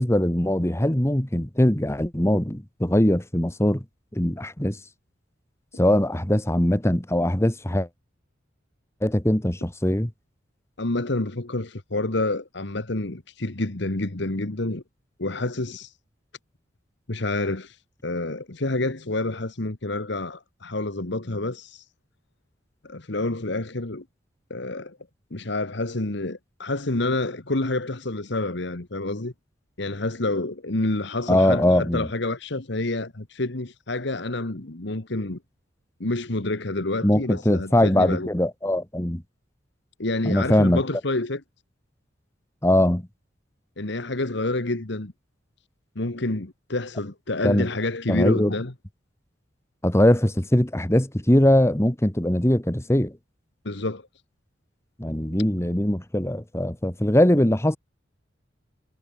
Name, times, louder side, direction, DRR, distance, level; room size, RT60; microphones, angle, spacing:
voice 1, 0.0-3.8 4.1-4.8 5.8-7.9 9.0-10.1 31.3-32.1 37.0-39.2 40.2-40.8 42.6-43.0 47.4-47.7 48.1-48.5 49.8-53.1 55.0-57.8, left 1 dB, 15° left, 1.7 m, -21 dB
voice 2, 10.8-14.8 15.2-15.9 17.1-17.8 18.0-21.8 22.8-24.0 24.5-25.0 25.3-29.3 29.8-35.4 36.0-38.3 40.0-41.4 43.8-45.1 45.9-48.7 53.6-54.1, left 2 dB, 65° left, 1.7 m, -28 dB
head